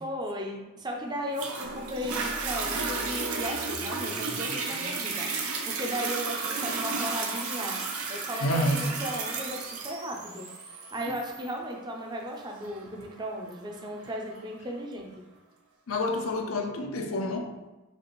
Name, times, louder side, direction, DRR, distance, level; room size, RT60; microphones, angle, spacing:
voice 1, 0.0-7.8 8.1-15.1, equal, 20° right, 0.5 m, -36 dB
Toilet flush, 1.4-14.4 15.0-15.1, right 4 dB, 80° right, 0.7 m, -33 dB
sound 1, 1.6-11.5, right 1 dB, 65° right, 1.2 m, -46 dB
voice 2, 8.4-8.9 11.1-11.2 15.9-17.6, left 1 dB, 65° left, 0.5 m, -28 dB
5.1 x 2.5 x 3.0 m
head